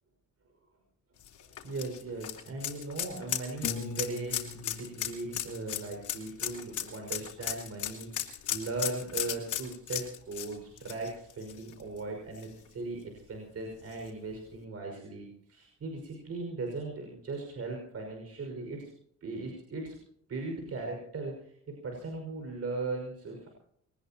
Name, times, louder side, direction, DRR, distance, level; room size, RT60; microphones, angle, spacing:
sound 1, 1.2-12.0 12.4-12.5 13.9-14.0, left 11 dB, 75° left, 3.3 m, -36 dB
voice 1, 1.4-18.9 19.2-19.9 20.3-21.5 21.8-23.5, right 3 dB, 55° right, 1 dB, 5.8 m, -38 dB
Piano, 3.6-6.6, left 4 dB, 60° left, 2.6 m, -43 dB
22.5 x 19.5 x 3.0 m, 0.67 s
cardioid pair, 90°, 30 cm